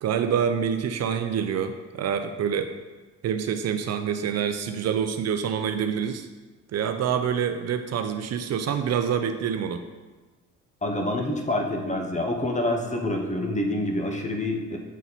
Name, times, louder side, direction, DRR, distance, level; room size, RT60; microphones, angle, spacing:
voice 1, 0.0-2.7 3.2-6.3 6.7-9.8, right 7 dB, 60° right, 8 dB, 0.5 m, -26 dB
voice 2, 10.8-14.8, left 1 dB, 25° left, 2 dB, 1.1 m, -27 dB
7.3 x 4.2 x 4.1 m, 1.2 s
cardioid pair, 90°, 30 cm